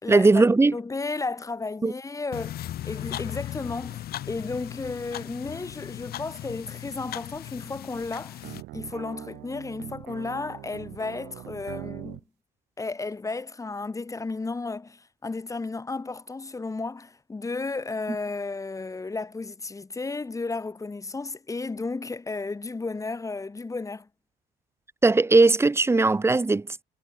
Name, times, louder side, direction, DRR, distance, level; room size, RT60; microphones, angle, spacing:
voice 1, 0.1-0.7 1.8-1.9 25.0-26.8, right 3 dB, 15° right, 0.9 m, -19 dB
voice 2, 0.7-12.2 12.8-24.1, left 3 dB, 20° left, 2.5 m, -33 dB
sound 1, 2.3-8.6, left 13 dB, 65° left, 3.5 m, -37 dB
sound 2, 8.4-12.2, right 20 dB, 90° right, 5.2 m, -41 dB
cardioid pair, 110°, 17 cm